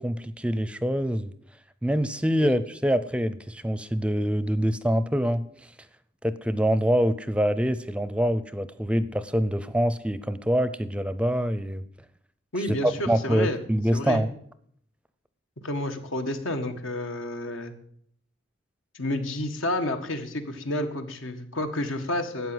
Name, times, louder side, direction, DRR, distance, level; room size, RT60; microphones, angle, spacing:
voice 1, 0.0-1.3 1.8-5.5 6.2-11.8 12.8-14.3, equal, 5° right, 14 dB, 0.5 m, -25 dB
voice 2, 12.5-13.6 13.9-14.2 15.6-17.7 18.9-22.5, left 1 dB, 90° left, 6 dB, 1.7 m, -30 dB
12.5 x 8.5 x 7.8 m, 0.66 s
head